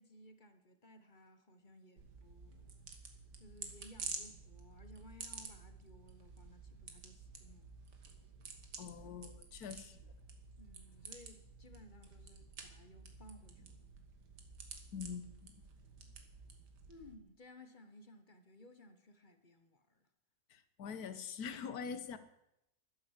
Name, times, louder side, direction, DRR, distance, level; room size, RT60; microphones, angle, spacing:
voice 1, 0.0-2.8 3.4-7.7 10.6-13.8 16.9-20.1, left 1 dB, 30° left, 1.1 m, -59 dB
sound 1, 2.0-17.2, right 5 dB, 70° right, 2.3 m, -51 dB
voice 2, 8.8-10.0 14.9-15.5 20.5-22.2, left 6 dB, 60° left, 1.6 m, -44 dB
12.0 x 11.0 x 8.1 m
omnidirectional pair, 1.9 m